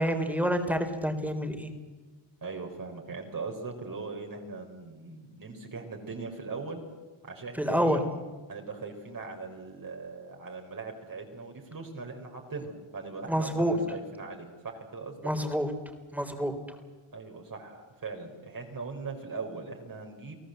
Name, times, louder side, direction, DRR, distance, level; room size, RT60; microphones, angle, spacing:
voice 1, 0.0-1.7 7.6-8.0 13.3-13.8 15.2-15.7 16.1-16.6, equal, 5° right, 6 dB, 3.7 m, -27 dB
voice 2, 2.4-6.8 7.2-8.0 8.5-15.3 17.1-20.3, right 4 dB, 40° right, 1 dB, 4.4 m, -40 dB
30.0 x 17.5 x 8.0 m, 1.3 s
cardioid pair, 95°, 49 cm